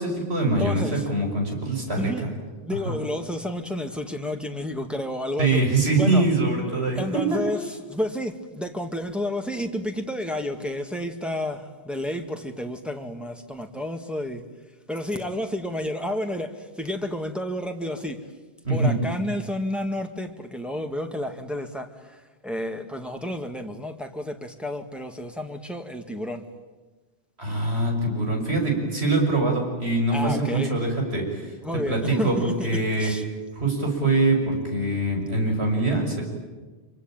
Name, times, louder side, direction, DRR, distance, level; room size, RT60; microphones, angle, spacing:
voice 1, 0.0-2.3 2.9-3.0 5.4-7.4 18.6-19.0 27.4-33.1 33.6-36.2, right 2 dB, 75° right, 6.4 m, -24 dB
voice 2, 0.6-1.1 2.0-2.2 2.6-5.6 6.0-6.2 6.9-14.4 14.9-18.2 18.7-26.4 30.1-30.7 31.3-32.7 33.0-33.3, left 1 dB, ahead, 2.0 m, -31 dB
26.0 x 24.5 x 9.0 m
omnidirectional pair, 1.1 m